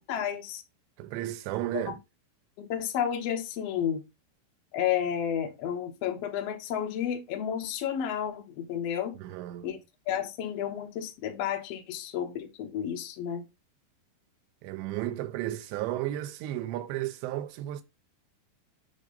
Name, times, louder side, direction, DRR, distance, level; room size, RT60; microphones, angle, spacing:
voice 1, 0.1-0.6 1.7-1.9 2.6-4.0 4.7-9.1 9.6-9.8 10.1-13.4, left 9 dB, 75° left, 1.5 m, -31 dB
voice 2, 1.0-2.0 9.2-9.7 14.6-17.8, right 14 dB, 90° right, 2.9 m, -33 dB
8.2 x 3.0 x 5.2 m
omnidirectional pair, 5.0 m